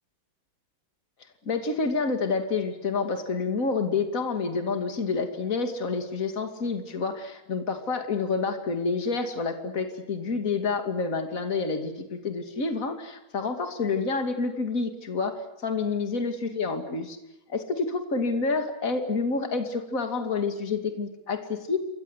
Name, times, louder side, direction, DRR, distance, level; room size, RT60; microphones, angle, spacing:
voice 1, 1.4-15.4 15.6-17.2 17.5-21.8, left 4 dB, 40° left, 6 dB, 2.9 m, -28 dB
28.5 x 23.5 x 8.2 m, 0.89 s
omnidirectional pair, 2.2 m